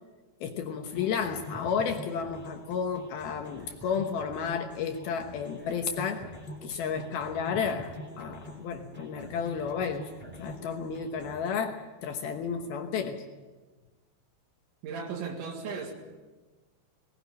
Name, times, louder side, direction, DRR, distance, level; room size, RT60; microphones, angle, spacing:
voice 1, 0.4-6.3 6.6-10.1 10.4-13.2, left 6 dB, 70° left, 6 dB, 2.7 m, -32 dB
sound 1, 0.9-11.6, equal, 5° right, 2.7 m, -45 dB
voice 2, 14.8-15.9, right 5 dB, 80° right, 2 dB, 4.3 m, -36 dB
19.5 x 18.0 x 8.8 m, 1.3 s
omnidirectional pair, 5.3 m